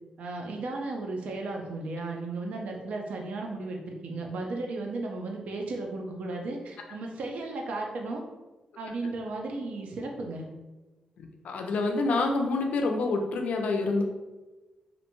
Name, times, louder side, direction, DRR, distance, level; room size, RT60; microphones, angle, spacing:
voice 1, 0.2-8.2 8.8-10.5, right 2 dB, 70° right, 2 dB, 0.4 m, -35 dB
voice 2, 11.2-14.0, left 3 dB, 70° left, 3 dB, 0.4 m, -27 dB
2.5 x 2.1 x 2.9 m, 1.1 s
wide cardioid pair, 145°, 2 cm